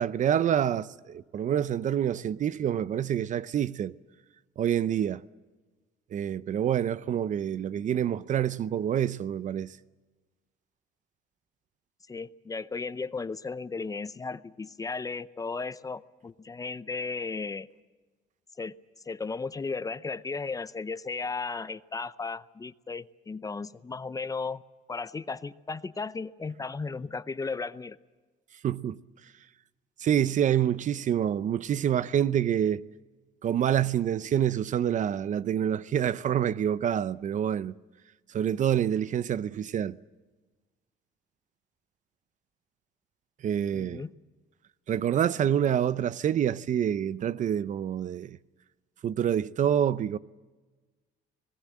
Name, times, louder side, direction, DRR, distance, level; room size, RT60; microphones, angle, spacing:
voice 1, 0.0-3.9 4.6-5.2 6.1-9.7 28.6-29.0 30.0-32.8 33.4-37.7 38.3-40.0 43.4-44.0 44.9-48.4 49.0-50.2, right 9 dB, 45° right, 0.7 m, -27 dB
voice 2, 12.1-17.7 18.6-18.7 19.1-24.6 24.9-28.0 43.7-44.1, left 4 dB, 20° left, 0.6 m, -35 dB
26.0 x 19.5 x 7.5 m
cardioid pair, 110°, 17 cm